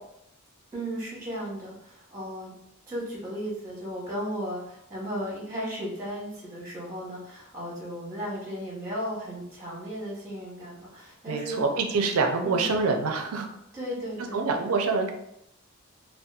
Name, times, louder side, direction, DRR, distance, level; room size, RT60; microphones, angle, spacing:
voice 1, 0.7-2.5 2.9-11.6 12.4-12.7 13.7-14.4, equal, 15° right, -6 dB, 0.9 m, -35 dB
voice 2, 11.3-13.5 14.3-15.1, right 4 dB, 85° right, 4 dB, 0.4 m, -26 dB
2.8 x 2.2 x 2.2 m, 0.78 s
head